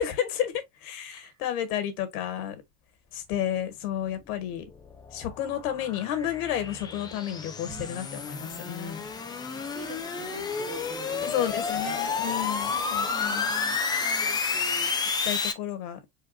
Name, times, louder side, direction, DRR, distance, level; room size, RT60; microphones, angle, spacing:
voice 1, 0.0-2.6 3.1-4.7 5.1-9.0 11.2-13.5 15.2-16.0, left 10 dB, 70° left, 1.7 m, -31 dB
voice 2, 1.1-1.4 7.6-9.0 9.5-11.3 11.7-12.1 12.7-15.0, right 5 dB, 30° right, 2.0 m, -45 dB
sound 1, 4.2-15.5, left 5 dB, 10° left, 0.4 m, -31 dB
4.7 x 4.2 x 2.5 m
supercardioid pair, 140°, 46 cm